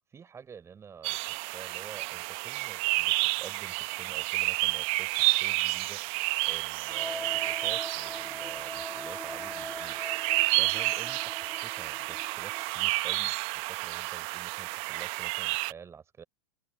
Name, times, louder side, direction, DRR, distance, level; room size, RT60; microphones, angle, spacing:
voice 1, 0.1-6.0 6.4-10.0 10.5-16.2, right 6 dB, 20° right, 5.4 m, -49 dB
sound 1, 1.0-15.7, right 26 dB, 50° right, 1.0 m, -30 dB
sound 2, 6.9-12.7, left 1 dB, 5° left, 0.8 m, -42 dB
open air
hypercardioid pair, 100°, 12 cm